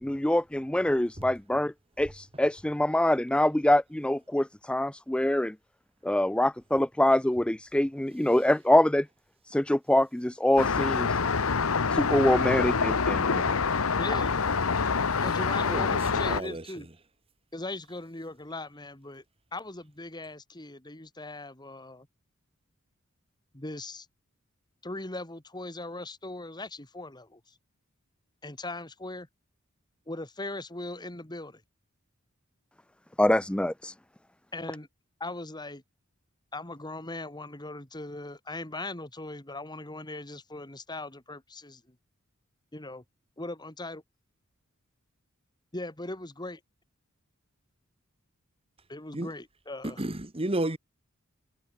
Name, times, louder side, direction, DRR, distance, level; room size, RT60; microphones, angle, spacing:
voice 1, 0.0-5.5 6.0-9.1 9.5-11.2 11.9-13.5 33.2-33.9, left 1 dB, 5° left, 0.4 m, -25 dB
Traffic noise roadway noise, 10.6-16.4, left 5 dB, 85° left, 1.0 m, -26 dB
voice 2, 13.9-14.4 15.2-16.9 17.5-19.2 19.5-22.1 23.5-24.1 24.8-27.5 28.4-29.3 30.1-31.6 34.5-34.9 35.2-35.8 36.5-42.0 42.7-43.0 43.4-44.0 45.7-46.6 48.9-50.0, left 2 dB, 20° left, 2.5 m, -39 dB
voice 3, 15.7-16.6 49.1-49.3 49.8-50.8, right 1 dB, 25° right, 1.7 m, -32 dB
head